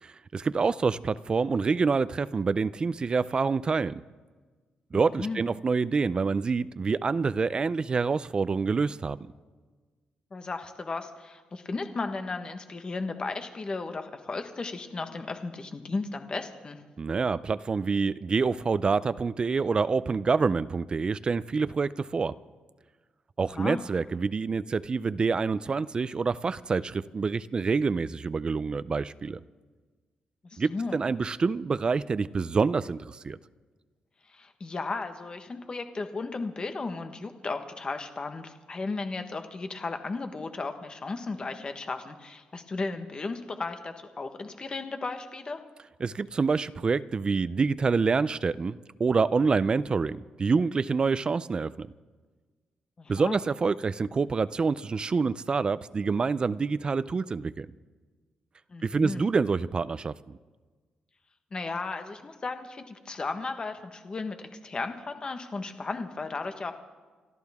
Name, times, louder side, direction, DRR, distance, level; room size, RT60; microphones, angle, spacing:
voice 1, 0.0-4.0 4.9-9.3 17.0-22.3 23.4-29.4 30.6-33.4 46.0-51.9 53.1-57.7 58.8-60.4, right 4 dB, 30° right, 0.4 m, -27 dB
voice 2, 4.9-5.4 10.3-16.8 23.5-23.8 30.4-31.0 34.3-45.6 53.0-53.4 58.7-59.2 61.5-66.7, left 3 dB, 30° left, 1.3 m, -35 dB
30.0 x 13.0 x 3.6 m
cardioid pair, 135°, 3 cm